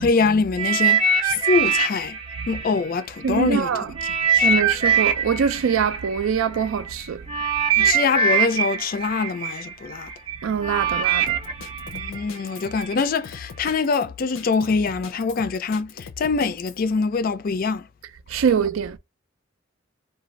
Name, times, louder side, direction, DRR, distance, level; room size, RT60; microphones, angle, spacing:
voice 1, 0.0-2.2 2.5-4.5 7.8-10.1 11.9-17.9, left 4 dB, 45° left, 0.4 m, -24 dB
sound 1, 0.6-3.5 4.0-12.9 13.7-13.8, right 5 dB, 25° right, 0.5 m, -23 dB
voice 2, 3.2-3.9 4.4-7.2 10.4-11.4 18.3-19.0, right 7 dB, 85° right, 0.4 m, -23 dB
Drum kit, 11.3-16.8, left 5 dB, 85° left, 0.6 m, -41 dB
2.5 x 2.3 x 3.1 m
head